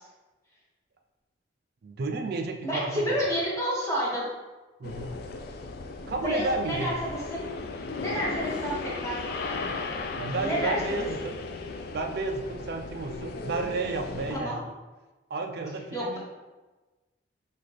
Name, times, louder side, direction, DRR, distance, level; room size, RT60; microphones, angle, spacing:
voice 1, 1.8-3.2 4.8-5.1 6.1-7.0 10.1-11.4 11.9-14.6 15.3-16.2, right 3 dB, 60° right, 3 dB, 0.4 m, -32 dB
voice 2, 2.6-4.3 6.0-7.5 8.0-9.9 10.4-11.1 14.3-14.6 15.9-16.2, equal, 15° left, -6 dB, 1.2 m, -30 dB
sound 1, 4.8-14.4, left 3 dB, 55° left, 0.3 m, -36 dB
5.7 x 2.4 x 3.1 m, 1.2 s
head